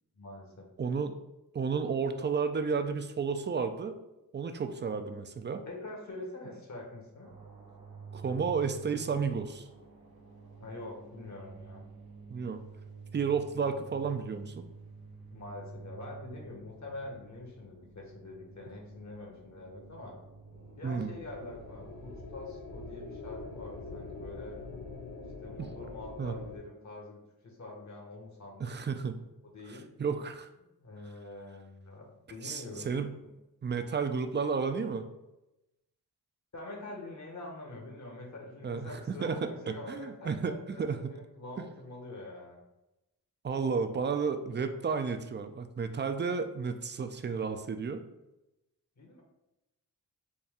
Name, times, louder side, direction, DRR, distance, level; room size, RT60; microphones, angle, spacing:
voice 1, 0.1-0.7 5.7-7.3 10.6-11.8 15.3-20.2 20.8-24.6 25.4-28.7 29.4-29.9 30.6-32.9 36.5-42.6 49.0-49.2, left 2 dB, 50° left, 0 dB, 1.2 m, -45 dB
voice 2, 0.8-1.2 1.5-4.0 4.3-5.6 8.1-9.7 12.3-12.6 13.1-14.7 20.8-21.1 25.6-25.7 26.2-26.4 28.6-29.1 30.0-30.5 32.4-33.1 33.6-35.1 38.6-41.1 41.6-41.7 43.4-48.0, right 5 dB, 30° right, 8 dB, 0.4 m, -32 dB
sound 1, 7.2-22.2, right 4 dB, 80° right, 0.9 m, -50 dB
sound 2, 20.5-26.6, left 3 dB, 75° left, 0.7 m, -44 dB
4.2 x 2.3 x 3.6 m, 0.94 s
cardioid pair, 55°, 37 cm